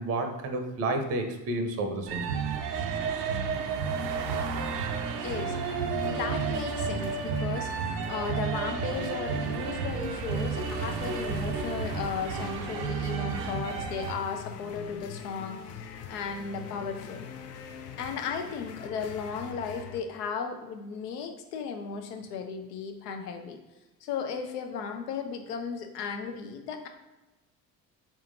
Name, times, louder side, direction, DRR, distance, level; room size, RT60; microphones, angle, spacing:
voice 1, 0.0-2.5, right 2 dB, 30° right, 6 dB, 0.6 m, -31 dB
sound 1, 2.1-14.1, right 5 dB, 75° right, 0.6 m, -31 dB
voice 2, 5.2-5.5 6.0-17.2 18.0-23.6 24.0-26.9, left 6 dB, 70° left, 5 dB, 0.7 m, -35 dB
sound 2, 5.3-20.0, left 7 dB, 35° left, 0.4 m, -43 dB
4.4 x 3.7 x 2.6 m, 1.1 s
figure-of-eight pair, 60°, 49 cm